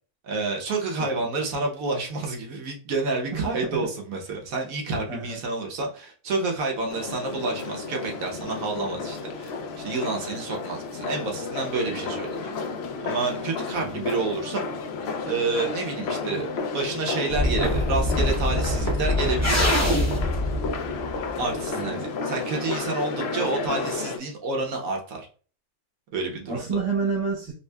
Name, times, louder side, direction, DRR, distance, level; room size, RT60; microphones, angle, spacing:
voice 1, 0.2-12.3 13.0-14.6 15.2-16.5 16.7-19.9 21.4-25.3 26.1-26.6, right 3 dB, 70° right, 1 dB, 1.3 m, -29 dB
voice 2, 3.3-3.9 5.1-5.4 11.9-12.1 13.8-14.1 21.7-22.0 26.5-27.5, right 4 dB, 85° right, -9 dB, 1.9 m, -30 dB
sound 1, 6.9-24.2, left 4 dB, 70° left, 0.6 m, -32 dB
sound 2, 17.3-21.5, left 1 dB, 15° left, 0.6 m, -24 dB
5.3 x 2.1 x 2.2 m, 0.39 s
omnidirectional pair, 1.6 m